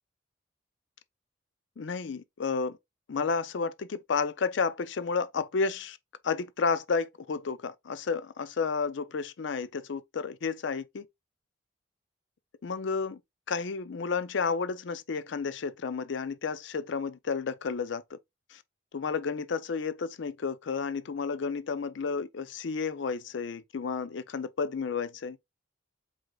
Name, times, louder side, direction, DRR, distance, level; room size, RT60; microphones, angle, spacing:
voice 1, 1.8-2.8 3.1-6.0 6.2-11.0 12.6-13.2 13.5-18.2 18.5-18.6 18.9-25.4, left 5 dB, 65° left, 0.5 m, -31 dB
4.8 x 3.8 x 2.3 m
head